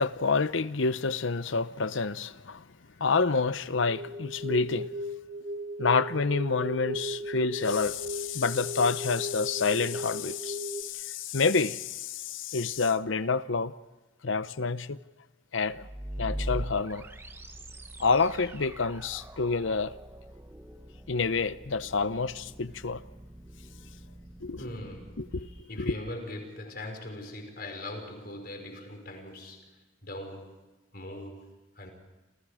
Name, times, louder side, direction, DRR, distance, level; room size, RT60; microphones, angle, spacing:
voice 1, 0.0-2.6 3.0-4.9 5.8-13.7 14.2-15.0 15.5-15.9 16.2-17.0 18.0-19.9 21.1-23.0 24.4-24.7 25.2-25.5 25.8-25.9, left 4 dB, 80° left, 0.8 m, -28 dB
sound 1, 3.9-10.8, left 1 dB, 45° right, 1.4 m, -37 dB
voice 2, 10.8-11.1 23.7-24.0 24.6-29.7 30.0-30.6 30.9-31.9, left 1 dB, 50° left, 5.1 m, -41 dB
sound 2, 15.6-25.6, right 1 dB, 10° right, 1.0 m, -42 dB
28.5 x 28.0 x 5.0 m
head